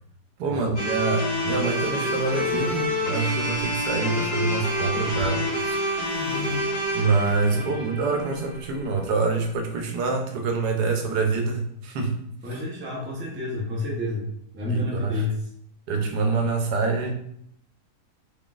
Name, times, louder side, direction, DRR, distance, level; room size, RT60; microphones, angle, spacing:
voice 1, 0.4-5.8 6.9-12.1 14.7-15.1 15.9-17.1, right 4 dB, 85° right, 3 dB, 1.3 m, -26 dB
sound 1, 0.8-8.9, equal, 45° left, 1.8 m, -28 dB
sound 2, 1.4-2.8 3.5-4.1 4.4-5.4 6.0-6.6 7.1-7.4 8.5-9.4, equal, 15° left, 1.2 m, -36 dB
voice 2, 7.5-8.0 12.4-14.3 14.5-15.3, left 2 dB, 15° right, -3 dB, 0.5 m, -30 dB
3.8 x 3.7 x 2.4 m, 0.71 s
omnidirectional pair, 1.7 m